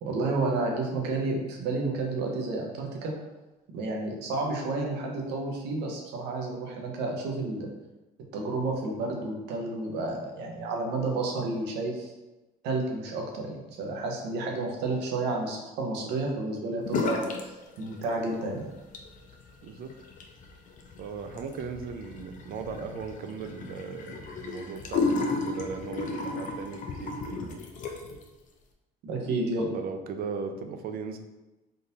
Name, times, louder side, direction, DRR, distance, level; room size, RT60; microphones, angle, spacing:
voice 1, 0.0-3.1 3.7-7.7 8.3-12.1 12.6-18.7 29.0-29.7, right 2 dB, 85° right, 1 dB, 0.7 m, -31 dB
sound 1, 16.9-17.5 17.7-18.4 18.8-28.2, left 3 dB, 50° left, 0.5 m, -33 dB
voice 2, 19.6-19.9 21.0-27.6 29.7-31.2, right 5 dB, 60° right, 6 dB, 0.4 m, -37 dB
3.6 x 2.5 x 2.7 m, 1.1 s
cardioid pair, 110°, 17 cm